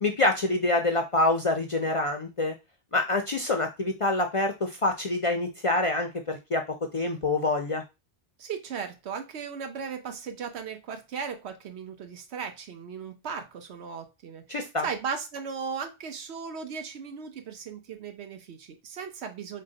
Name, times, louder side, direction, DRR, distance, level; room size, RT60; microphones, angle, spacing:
voice 1, 0.0-2.5 2.9-7.8 14.5-14.9, left 2 dB, 50° left, 4 dB, 0.4 m, -26 dB
voice 2, 8.4-19.6, right 6 dB, 85° right, 6 dB, 1.0 m, -37 dB
3.7 x 2.2 x 3.8 m, 0.24 s
omnidirectional pair, 1.1 m